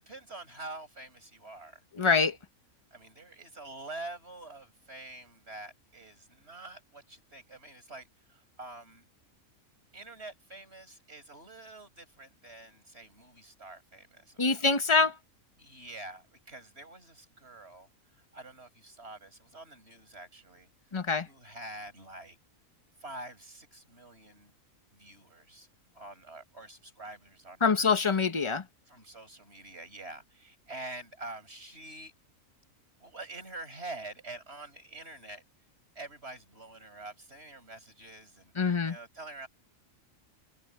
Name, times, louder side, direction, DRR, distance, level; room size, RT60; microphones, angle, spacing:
voice 1, 0.0-2.3 2.9-9.1 9.9-14.6 15.6-17.9 18.3-20.7 21.3-22.4 23.0-24.5 24.9-25.7 25.9-27.9 28.9-32.1 33.0-35.4 35.9-39.5, right 2 dB, 45° right, 6.7 m, -46 dB
voice 2, 2.0-2.4 14.4-15.1 20.9-21.3 27.6-28.6 38.6-39.0, left 4 dB, 25° left, 1.1 m, -25 dB
omnidirectional pair, 1.5 m